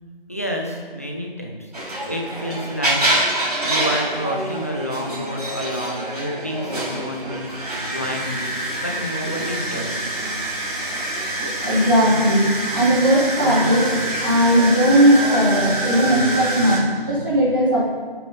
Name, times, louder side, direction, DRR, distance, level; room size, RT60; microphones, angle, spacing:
voice 1, 0.3-3.0 3.6-7.5 7.8-10.1, equal, 15° left, 0 dB, 1.0 m, -29 dB
sound 1, 1.7-16.8, right 1 dB, 45° right, 5.6 m, -26 dB
voice 2, 11.6-17.9, equal, 20° right, -7 dB, 3.3 m, -18 dB
19.0 x 9.3 x 5.4 m, 1.5 s
figure-of-eight pair, 175°, 29 cm